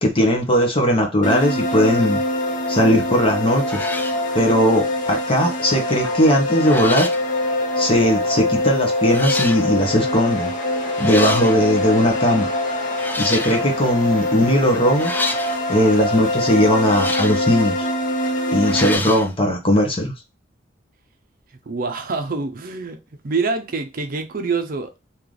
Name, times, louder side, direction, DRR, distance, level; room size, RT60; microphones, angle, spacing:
voice 1, 0.0-2.2 2.7-3.9 4.3-7.1 7.8-10.5 11.0-12.5 13.2-15.1 15.7-17.9 18.5-20.1, equal, 30° left, 1.1 m, -18 dB
sound 1, 1.2-19.0, left 1 dB, 45° left, 0.7 m, -24 dB
sound 2, 3.1-3.3 3.6-4.2 5.9-6.2 6.6-7.3 8.2-8.3 9.1-9.6 10.8-11.6 12.9-13.7 14.9-15.6 16.8-17.5 18.6-19.3, left 2 dB, 10° left, 0.3 m, -28 dB
voice 2, 21.7-23.0 23.2-25.0, right 4 dB, 50° right, 0.6 m, -25 dB
3.3 x 2.9 x 3.8 m
head